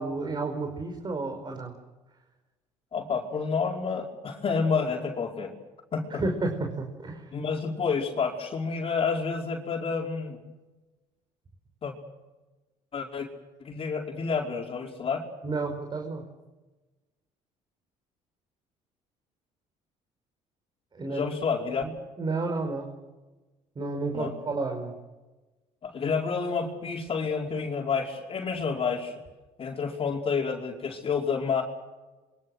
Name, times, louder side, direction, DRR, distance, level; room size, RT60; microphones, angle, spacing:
voice 1, 0.0-1.7 6.1-7.3 15.4-16.2 20.9-21.2 21.8-21.9 22.2-22.9 23.7-24.9, right 3 dB, 35° right, 3 dB, 5.1 m, -31 dB
voice 2, 2.9-5.5 5.9-6.2 7.3-10.4 11.8-11.9 12.9-13.3 13.6-15.3 21.1-21.8 24.1-24.3 25.8-29.1 29.6-31.6, left 5 dB, 40° left, 0 dB, 5.0 m, -29 dB
27.0 x 24.5 x 6.5 m, 1.2 s
supercardioid pair, 90°, 14 cm